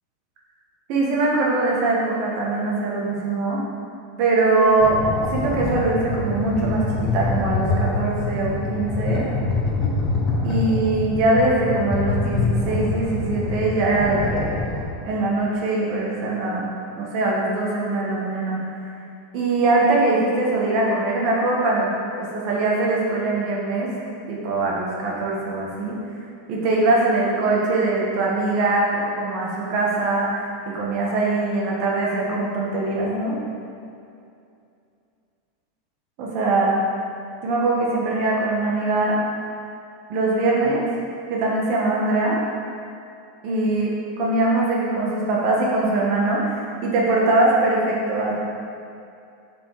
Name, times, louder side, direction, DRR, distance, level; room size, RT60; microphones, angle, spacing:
voice 1, 0.9-3.6 4.2-5.0 5.3-9.3 10.4-14.5 15.0-16.6 16.9-18.9 19.3-23.9 24.3-25.9 26.5-33.4 36.2-36.8 37.4-39.2 40.1-40.8 41.3-42.4 43.4-48.3, right 2 dB, 50° right, -3 dB, 1.5 m, -22 dB
sound 1, 4.8-14.8, left 3 dB, 25° left, 1.2 m, -25 dB
7.4 x 4.7 x 4.8 m, 2.5 s
supercardioid pair, 150°, 0 cm